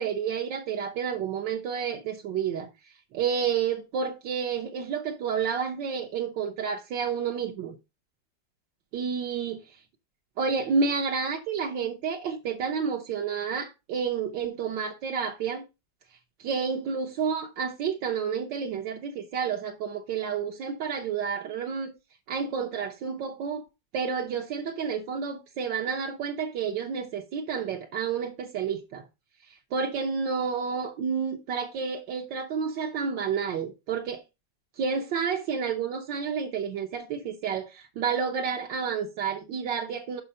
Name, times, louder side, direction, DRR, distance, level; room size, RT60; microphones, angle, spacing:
voice 1, 0.0-2.7 3.1-7.8 8.9-9.6 10.4-15.6 16.4-21.9 22.3-23.6 23.9-29.0 29.7-34.2 34.8-40.2, right 6 dB, 80° right, 1.6 m, -30 dB
5.7 x 5.6 x 5.4 m
omnidirectional pair, 2.0 m